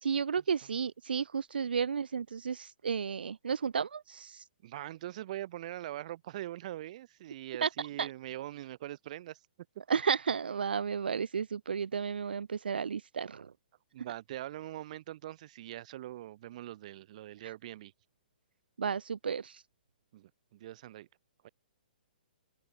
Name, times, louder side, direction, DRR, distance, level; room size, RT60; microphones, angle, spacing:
voice 1, 0.0-4.4 7.6-7.7 8.0-8.1 9.9-13.5 18.8-19.6, right 6 dB, 85° right, 1.4 m, -32 dB
voice 2, 4.6-9.4 13.9-17.9 20.1-21.1 21.4-21.5, right 14 dB, 45° right, 4.0 m, -42 dB
open air
hypercardioid pair, 150°, 5 cm